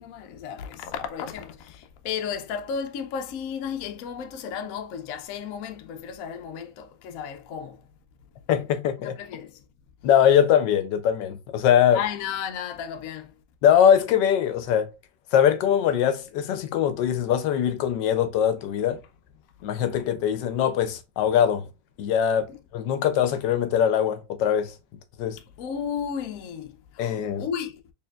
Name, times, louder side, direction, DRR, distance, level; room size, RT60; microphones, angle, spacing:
voice 1, 0.0-7.8 9.2-9.6 11.9-13.3 22.5-22.6 25.6-27.7, left 7 dB, 65° left, 0.9 m, -33 dB
voice 2, 8.5-9.2 10.0-12.0 13.6-14.9 15.3-19.0 19.6-21.7 22.0-24.7 25.2-25.4 27.0-27.4, left 9 dB, 90° left, 1.2 m, -22 dB
4.3 x 3.4 x 2.3 m
omnidirectional pair, 1.9 m